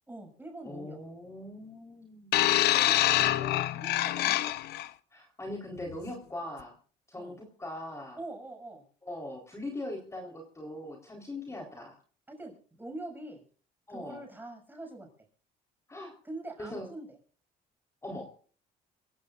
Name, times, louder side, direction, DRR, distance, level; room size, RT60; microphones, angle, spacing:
voice 1, 0.1-1.0 2.7-4.6 7.1-7.4 8.2-8.8 11.5-11.7 12.3-13.4 13.9-15.1 16.2-17.1, right 2 dB, 10° right, 3 dB, 6.7 m, -44 dB
voice 2, 0.6-2.4 5.1-6.7 7.1-8.2 9.0-12.0 13.9-14.2 15.9-16.1 16.6-16.9 18.0-18.3, left 1 dB, 15° left, 1 dB, 4.0 m, -41 dB
sound 1, 2.3-4.9 5.8-6.0, left 14 dB, 75° left, 0.9 m, -26 dB
26.0 x 16.0 x 2.5 m, 0.43 s
cardioid pair, 110°, 17 cm